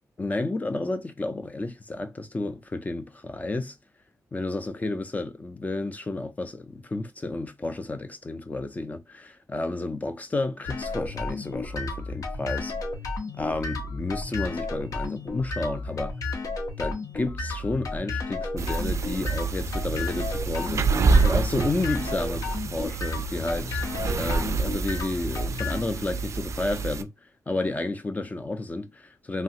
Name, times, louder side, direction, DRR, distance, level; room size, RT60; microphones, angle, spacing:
voice 1, 0.2-3.8 4.3-12.7 13.4-16.1 16.8-23.9 24.1-27.1 27.5-29.4, left 2 dB, 25° left, 0.4 m, -31 dB
sound 1, 10.6-25.8, left 3 dB, 70° left, 0.8 m, -33 dB
sound 2, 18.6-27.0, right 4 dB, 55° right, 0.3 m, -27 dB
3.2 x 2.4 x 2.7 m
cardioid pair, 100°, 6 cm